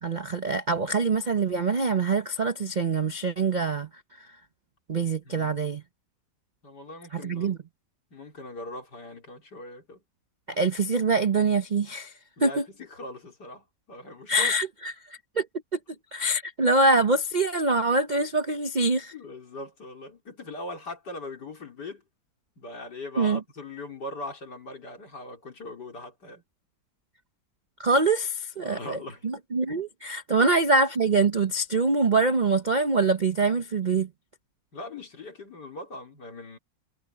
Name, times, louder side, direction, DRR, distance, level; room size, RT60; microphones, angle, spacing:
voice 1, 0.0-3.9 4.2-4.3 4.9-5.8 7.1-7.6 10.5-12.1 12.4-12.6 14.3-14.9 15.4-15.5 15.7-15.8 16.1-19.1 23.2-23.4 27.8-29.0 29.2-34.1, right 3 dB, 45° right, 0.6 m, -24 dB
voice 2, 5.2-5.5 6.6-7.5 8.1-10.0 12.4-14.5 19.1-22.0 22.6-26.4 28.6-29.3 34.7-36.6, left 2 dB, 70° left, 4.5 m, -40 dB
omnidirectional pair, 1.9 m